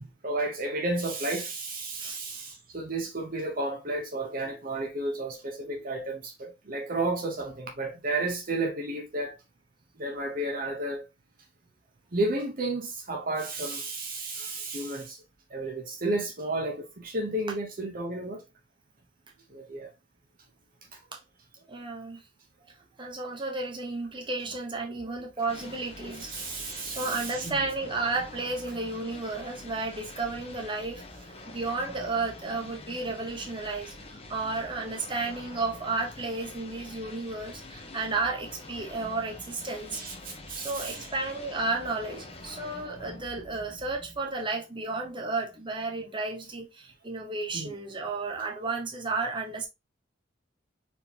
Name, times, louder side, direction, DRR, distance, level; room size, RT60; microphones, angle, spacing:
voice 1, 0.0-9.4 10.0-11.1 12.1-15.2 15.5-18.4 19.5-19.9 20.9-21.0 26.3-27.7 39.9-41.0 47.5-47.7, right 2 dB, 50° right, 0.9 m, -32 dB
voice 2, 21.7-22.2 23.0-26.3 26.8-40.0 40.5-49.7, right 3 dB, 25° right, 1.1 m, -33 dB
sound 1, 25.5-44.5, left 2 dB, 30° left, 1.0 m, -46 dB
4.3 x 3.8 x 2.8 m
head